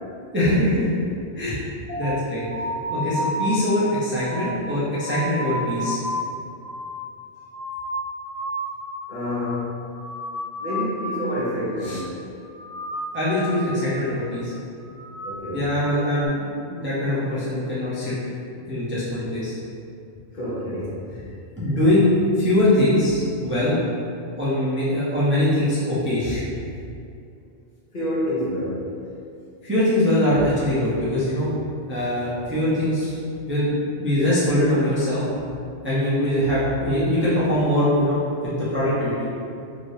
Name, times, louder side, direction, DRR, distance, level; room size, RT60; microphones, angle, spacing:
voice 1, 0.3-0.9 1.4-1.6 2.0-2.5 2.9-6.0 11.8-12.0 13.1-14.5 15.5-18.1 18.7-19.5 21.6-22.1 22.4-23.7 24.4-26.4 29.6-31.5 31.9-33.1 33.5-33.7 34.0-35.2 35.8-38.2 38.4-39.1, left 1 dB, 15° right, -10 dB, 0.4 m, -22 dB
sound 1, 1.9-8.9 9.1-9.6 9.9-11.4 11.7-12.1 12.4-13.9 14.2-14.6 14.9-16.3, equal, 85° left, 1.2 m, -32 dB
voice 2, 9.1-9.7 10.6-12.1 15.2-15.7 20.3-21.0 27.9-28.8, equal, 45° left, -8 dB, 0.7 m, -28 dB
3.2 x 2.9 x 2.7 m, 2.6 s
omnidirectional pair, 1.2 m